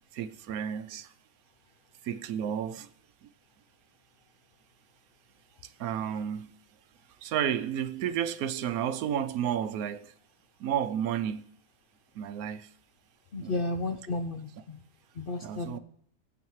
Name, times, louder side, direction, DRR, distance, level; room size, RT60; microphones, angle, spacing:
voice 1, 0.1-1.1 2.0-2.9 5.8-6.5 7.2-10.1 10.6-11.4 12.2-12.7 13.4-13.6 15.4-15.8, right 9 dB, 80° right, 1.1 m, -31 dB
voice 2, 13.3-14.8 15.2-15.8, left 2 dB, 55° left, 0.6 m, -33 dB
23.0 x 8.1 x 3.1 m
omnidirectional pair, 1.5 m